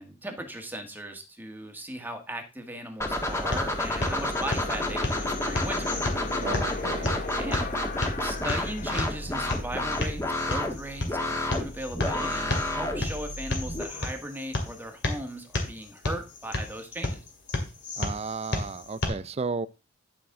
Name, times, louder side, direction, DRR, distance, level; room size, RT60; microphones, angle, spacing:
voice 1, 0.0-5.9 7.3-7.7 8.2-10.2 10.5-17.2, right 1 dB, 10° right, 1.4 m, -37 dB
sound 1, 3.0-13.8, left 1 dB, 15° left, 1.5 m, -30 dB
sound 2, 3.1-19.1, left 2 dB, 60° left, 2.4 m, -33 dB
sound 3, 3.5-14.1, left 3 dB, 40° left, 0.8 m, -41 dB
voice 2, 6.4-7.2 18.0-19.7, right 4 dB, 30° right, 0.4 m, -33 dB
11.5 x 6.0 x 3.7 m
head